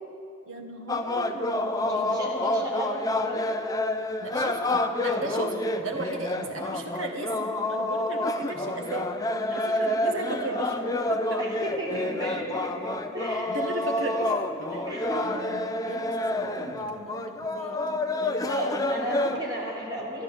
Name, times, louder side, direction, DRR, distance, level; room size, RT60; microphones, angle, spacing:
voice 1, 0.5-2.2 4.2-9.2 9.5-11.4 11.9-12.2 13.5-14.9 15.2-19.2, right 1 dB, 90° right, 3 dB, 1.6 m, -37 dB
sound 1, 0.9-19.4, left 2 dB, 20° left, 0.5 m, -28 dB
voice 2, 1.7-3.5 9.3-10.6 11.4-13.6 14.8-15.3 18.4-20.2, right 1 dB, 20° right, -5 dB, 3.1 m, -34 dB
12.0 x 11.5 x 7.2 m, 2.9 s
head